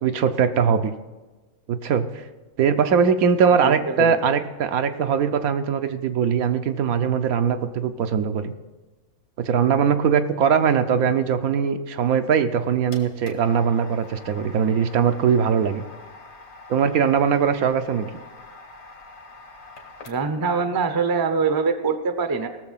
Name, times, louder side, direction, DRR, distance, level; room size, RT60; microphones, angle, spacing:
voice 1, 0.0-0.9 1.7-2.2 2.6-8.5 9.4-15.8 16.7-18.1, right 7 dB, 75° right, 9 dB, 1.1 m, -21 dB
voice 2, 3.6-4.2 20.1-22.5, right 5 dB, 25° right, 8 dB, 0.5 m, -23 dB
sound 1, 12.4-20.5, left 3 dB, 70° left, 2.0 m, -45 dB
18.0 x 7.0 x 5.7 m, 1.2 s
omnidirectional pair, 1.6 m